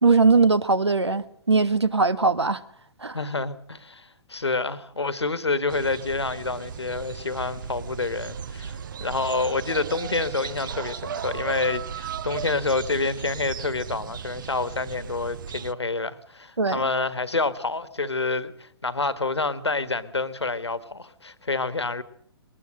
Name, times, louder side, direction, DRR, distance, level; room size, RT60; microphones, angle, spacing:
voice 1, 0.0-2.6 3.0-3.2 16.6-16.8, right 4 dB, 80° right, 1.3 m, -20 dB
voice 2, 3.1-22.0, left 3 dB, 80° left, 1.5 m, -28 dB
sound 1, 5.7-15.7, right 7 dB, 50° right, 0.8 m, -36 dB
21.0 x 19.5 x 6.6 m
figure-of-eight pair, 125°, 14 cm